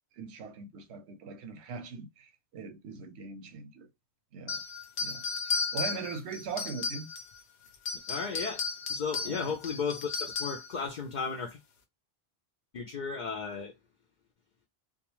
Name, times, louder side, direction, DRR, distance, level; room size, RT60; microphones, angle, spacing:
voice 1, 0.1-3.9 4.3-4.6 5.0-7.1 9.2-9.5, right 5 dB, 85° right, 0.9 m, -41 dB
sound 1, 4.5-7.4 7.7-10.7, left 4 dB, 80° left, 0.9 m, -34 dB
voice 2, 8.1-8.6 8.9-11.6 12.7-13.7, left 5 dB, 55° left, 0.6 m, -34 dB
2.3 x 2.3 x 3.0 m
omnidirectional pair, 1.1 m